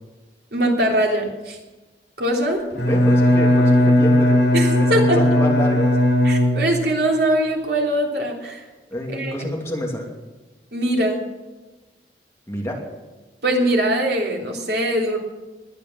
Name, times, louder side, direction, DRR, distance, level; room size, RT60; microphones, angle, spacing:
voice 1, 0.5-1.6 2.2-2.6 4.5-5.2 6.2-8.6 9.1-9.3 10.7-11.2 13.4-15.2, right 1 dB, 65° right, 0 dB, 3.3 m, -21 dB
Bowed string instrument, 2.7-7.0, left 1 dB, 70° left, 7.6 m, -17 dB
voice 2, 2.8-4.4 4.7-6.0 8.9-10.1 12.5-12.8, left 1 dB, 15° left, -1 dB, 2.6 m, -27 dB
20.5 x 8.7 x 7.3 m, 1.2 s
head